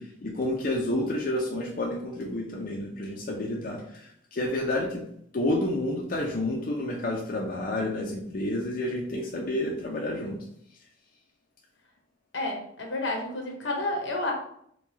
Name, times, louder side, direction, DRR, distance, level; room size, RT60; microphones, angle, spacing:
voice 1, 0.0-5.0 5.3-10.4, left 1 dB, 50° left, -1 dB, 0.5 m, -30 dB
voice 2, 12.3-14.3, left 2 dB, 85° left, 1 dB, 0.9 m, -30 dB
4.6 x 2.3 x 2.8 m, 0.69 s
head